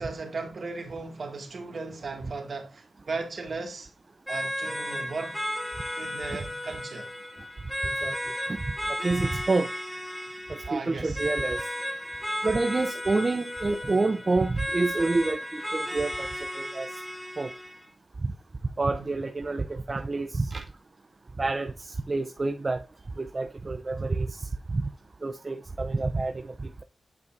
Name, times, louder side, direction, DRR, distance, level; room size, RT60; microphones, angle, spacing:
voice 1, 0.0-3.9 4.3-5.4 6.0-7.1 10.7-11.3 18.9-19.2, right 3 dB, 65° right, 2.1 m, -36 dB
sound 1, 4.3-17.9, equal, ahead, 2.3 m, -34 dB
voice 2, 9.0-9.7 10.5-11.6 12.4-16.9 17.4-17.5 18.2-18.3 18.8-20.6 21.4-22.8 23.2-24.8 25.2-26.5, right 3 dB, 45° right, 0.5 m, -28 dB
9.5 x 5.3 x 2.6 m
cardioid pair, 45°, 0 cm